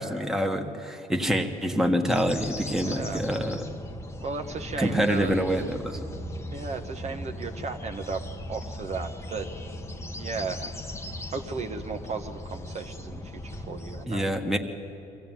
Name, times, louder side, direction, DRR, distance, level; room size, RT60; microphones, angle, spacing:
voice 1, 0.0-3.6 4.8-6.0 14.1-14.6, equal, ahead, 3 dB, 1.6 m, -26 dB
sound 1, 2.0-14.1, left 1 dB, 15° left, 1.1 m, -38 dB
voice 2, 2.7-3.2 4.2-5.4 6.5-9.5 10.1-10.7 11.3-14.2, right 4 dB, 40° right, 5 dB, 1.2 m, -35 dB
23.5 x 16.0 x 9.3 m, 2.8 s
cardioid pair, 110°, 17 cm